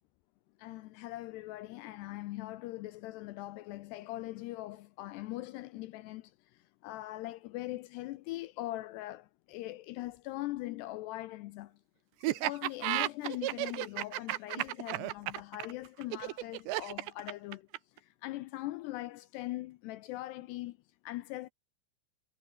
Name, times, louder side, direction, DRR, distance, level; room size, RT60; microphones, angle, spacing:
voice 1, 0.6-6.3 6.8-11.7 12.2-17.7 18.0-20.8 21.0-21.5, left 17 dB, 85° left, 2.5 m, -41 dB
Laughter, 12.2-18.0, right 17 dB, 75° right, 3.0 m, -33 dB
omnidirectional pair, 5.5 m